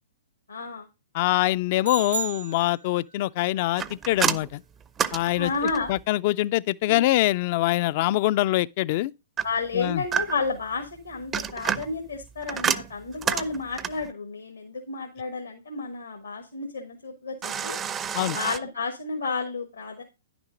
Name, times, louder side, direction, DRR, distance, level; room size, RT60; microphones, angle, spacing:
voice 1, 0.5-0.9 5.4-5.9 6.9-7.1 9.4-17.8 18.3-20.0, left 4 dB, 80° left, 1.5 m, -31 dB
voice 2, 1.1-4.6 5.1-5.5 5.9-9.1 9.7-10.0 18.1-18.4, left 16 dB, 45° left, 0.4 m, -24 dB
sound 1, 1.8-3.3, right 6 dB, 90° right, 1.0 m, -34 dB
sound 2, 3.8-6.0 9.4-10.6 11.1-14.1 17.4-18.6, right 8 dB, 20° right, 0.5 m, -29 dB
10.5 x 6.0 x 3.8 m
figure-of-eight pair, 115°, 0 cm